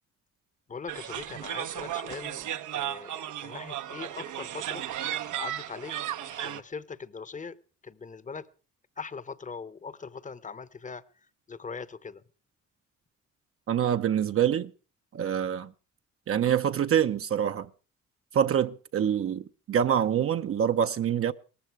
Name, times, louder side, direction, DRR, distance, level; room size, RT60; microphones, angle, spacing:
voice 1, 0.7-2.5 2.7-4.8 5.4-7.6 7.8-8.5 9.0-11.0 11.5-12.2, left 5 dB, 25° left, 0.9 m, -41 dB
sound 1, 0.9-6.6, right 11 dB, 80° right, 0.9 m, -35 dB
voice 2, 13.7-14.7 15.1-15.7 16.3-17.7 18.3-21.3, right 9 dB, 50° right, 0.7 m, -25 dB
18.0 x 14.5 x 4.6 m
cardioid pair, 90°, 30 cm